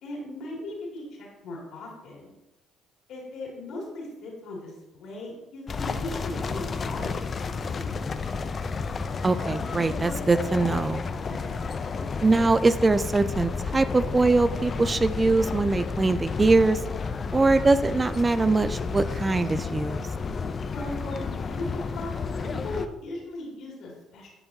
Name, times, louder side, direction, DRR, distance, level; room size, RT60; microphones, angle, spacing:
voice 1, 0.0-2.3 3.1-8.1 11.3-11.7 20.7-22.1 22.4-24.3, left 2 dB, 65° left, -2 dB, 2.6 m, -38 dB
sound 1, 5.7-22.9, left 5 dB, 40° left, 0.5 m, -31 dB
voice 2, 9.2-11.1 12.2-16.8 17.3-20.0, right 3 dB, 25° right, 13 dB, 0.4 m, -22 dB
10.5 x 5.6 x 2.8 m, 1.0 s
supercardioid pair, 65°, 0 cm